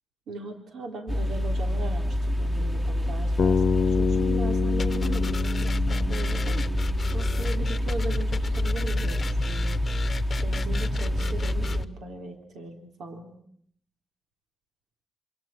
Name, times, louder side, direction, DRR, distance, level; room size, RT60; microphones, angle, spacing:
voice 1, 0.3-9.8 10.4-13.3, right 2 dB, 90° right, 5 dB, 3.9 m, -39 dB
sound 1, 1.1-11.8, equal, 10° right, 1.6 m, -27 dB
Bass guitar, 3.4-7.5, left 6 dB, 55° left, 1.0 m, -28 dB
sound 2, 4.8-11.8, left 4 dB, 35° left, 1.0 m, -34 dB
28.0 x 27.5 x 6.0 m, 0.64 s
wide cardioid pair, 130°, 0 cm